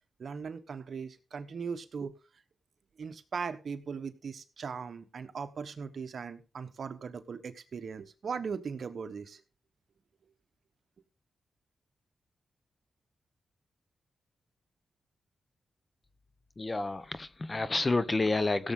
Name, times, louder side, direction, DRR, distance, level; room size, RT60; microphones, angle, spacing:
voice 1, 0.2-2.1 3.0-9.4, right 5 dB, 60° right, 1.1 m, -39 dB
voice 2, 16.6-18.7, left 3 dB, 30° left, 0.9 m, -29 dB
16.5 x 7.3 x 3.8 m
cardioid pair, 80°, 0 cm